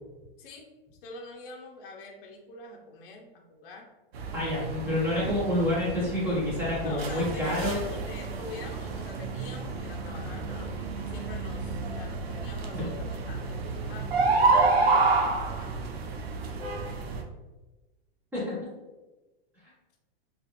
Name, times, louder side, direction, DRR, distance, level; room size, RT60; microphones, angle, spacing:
voice 1, 1.0-3.9 6.8-14.1 14.4-15.9, left 2 dB, 60° left, 1 dB, 0.6 m, -45 dB
sound 1, 4.1-17.2, right 3 dB, 90° right, 0.6 m, -29 dB
voice 2, 4.3-7.7 18.3-18.5, left 1 dB, 5° right, -8 dB, 0.7 m, -28 dB
2.4 x 2.4 x 2.8 m, 1.1 s
supercardioid pair, 165°, 30 cm